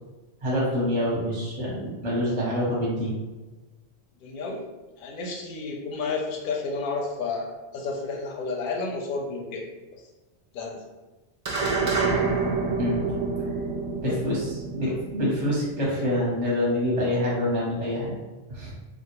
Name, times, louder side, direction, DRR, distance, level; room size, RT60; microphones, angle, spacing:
voice 1, 0.4-3.2 12.8-13.1 14.0-18.1 18.5-18.7, left 1 dB, 35° right, -5 dB, 0.7 m, -26 dB
voice 2, 4.2-4.6 5.0-9.6 10.5-10.8 14.0-14.2, left 4 dB, 60° left, 0 dB, 0.6 m, -31 dB
sound 1, 11.4-16.1, right 4 dB, 60° right, 0.3 m, -28 dB
2.3 x 2.1 x 2.9 m, 1.2 s
omnidirectional pair, 1.1 m